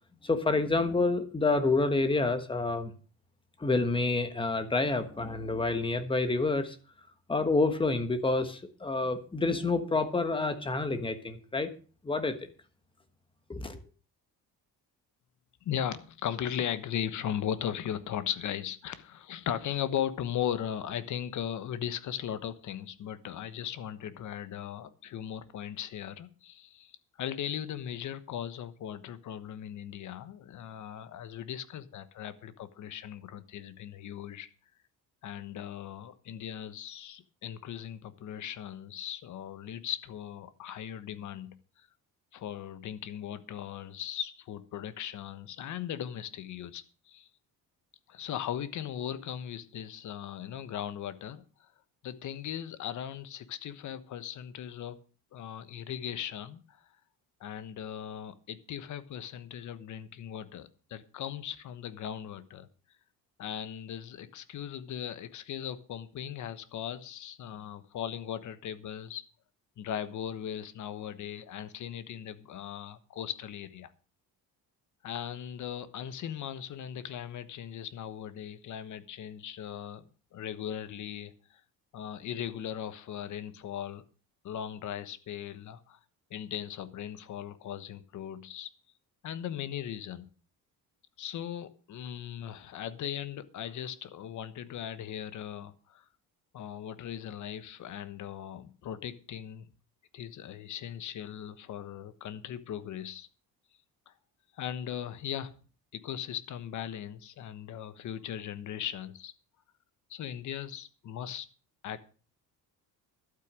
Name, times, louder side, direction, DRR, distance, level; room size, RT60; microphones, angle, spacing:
voice 1, 0.2-2.9 3.6-6.8 7.3-11.7 12.0-12.4 13.5-13.8, left 3 dB, 15° left, 10 dB, 1.3 m, -28 dB
voice 2, 15.6-34.5 35.2-41.9 42.3-47.3 48.1-51.7 52.0-55.0 55.3-56.8 57.4-62.7 63.4-69.2 69.8-73.9 75.0-80.0 80.3-81.6 81.9-84.0 84.4-86.0 86.3-88.7 89.2-90.3 91.2-96.0 96.5-99.7 100.1-103.3 104.1-104.2 104.6-105.5 105.9-109.3 110.1-111.5 111.8-112.0, left 10 dB, 55° left, 13 dB, 1.2 m, -38 dB
12.0 x 8.8 x 6.2 m, 0.38 s
cardioid pair, 150°, 35 cm